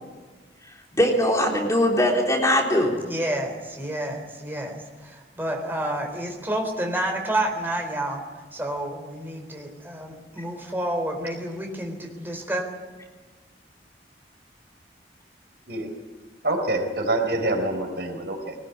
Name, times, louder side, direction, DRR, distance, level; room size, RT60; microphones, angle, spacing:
voice 1, 0.9-3.0, left 1 dB, 20° left, -1 dB, 3.8 m, -21 dB
voice 2, 3.0-8.2 8.5-12.7, right 1 dB, 10° right, 2 dB, 4.0 m, -29 dB
voice 3, 16.4-18.5, right 2 dB, 65° right, 4 dB, 4.3 m, -26 dB
21.5 x 19.5 x 9.7 m, 1.4 s
head